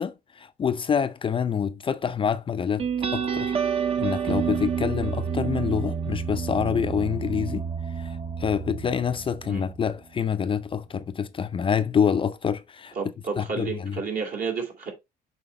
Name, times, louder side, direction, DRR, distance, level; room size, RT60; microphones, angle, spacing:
voice 1, 0.0-3.5 4.0-7.6 8.0-12.9 13.4-14.0, left 7 dB, 30° left, 0.5 m, -27 dB
sound 1, 2.8-9.9, right 7 dB, 35° right, 0.8 m, -29 dB
voice 2, 13.0-14.9, right 5 dB, 60° right, 2.6 m, -31 dB
7.0 x 4.5 x 3.1 m
cardioid pair, 110°, 17 cm